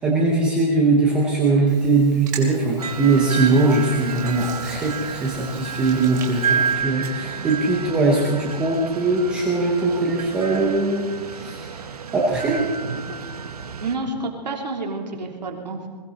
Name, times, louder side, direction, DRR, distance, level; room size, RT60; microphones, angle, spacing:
voice 1, 0.0-11.7 12.1-12.7, right 3 dB, 5° right, -3 dB, 0.7 m, -21 dB
Hands, 1.7-6.7, right 7 dB, 30° right, 2.8 m, -40 dB
sound 1, 2.8-14.0, right 6 dB, 65° right, 1.2 m, -30 dB
voice 2, 13.8-15.9, right 3 dB, 85° right, 1 dB, 3.2 m, -29 dB
21.5 x 16.5 x 4.1 m, 1.5 s
hypercardioid pair, 180°, 21 cm